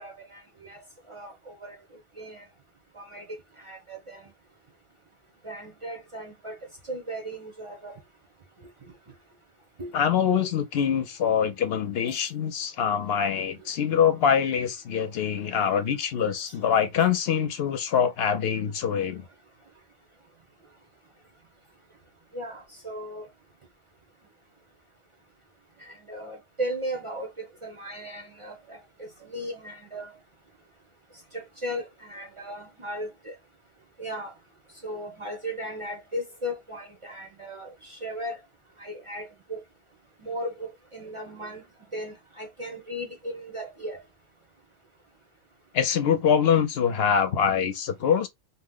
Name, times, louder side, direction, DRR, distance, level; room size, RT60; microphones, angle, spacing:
voice 1, 0.0-1.8 2.2-2.4 2.9-3.3 3.6-4.3 5.4-6.6 6.8-8.0 9.8-9.9 16.5-16.6 22.3-23.3 25.8-30.2 31.3-33.4 34.0-34.3 34.8-38.4 38.8-39.6 40.2-41.6 41.9-44.0, equal, 35° right, 0.6 m, -36 dB
voice 2, 9.9-19.2 45.7-48.3, left 8 dB, 70° left, 0.8 m, -24 dB
2.7 x 2.1 x 3.6 m
omnidirectional pair, 1.1 m